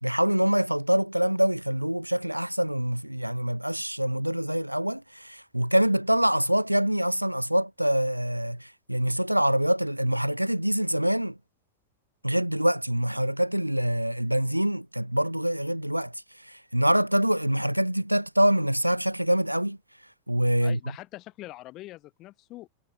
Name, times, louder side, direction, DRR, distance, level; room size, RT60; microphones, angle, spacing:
voice 1, 0.0-11.4 12.2-16.1 16.4-19.8 20.3-20.8, equal, 90° right, 0.9 m, -25 dB
voice 2, 20.6-22.7, left 17 dB, 35° left, 2.3 m, -43 dB
figure-of-eight pair, 90°, 0 cm